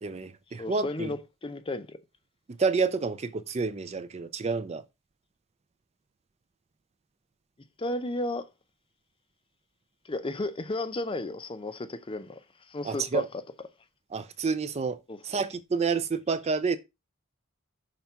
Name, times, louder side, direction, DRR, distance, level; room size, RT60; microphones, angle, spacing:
voice 1, 0.0-1.1 2.6-4.8 12.8-13.2 14.1-15.0 15.2-16.8, right 4 dB, 30° right, 0.4 m, -29 dB
voice 2, 0.6-2.0 7.8-8.5 10.0-12.4 12.7-13.3 15.1-15.2, left 2 dB, 25° left, 0.6 m, -33 dB
5.9 x 3.4 x 5.5 m
head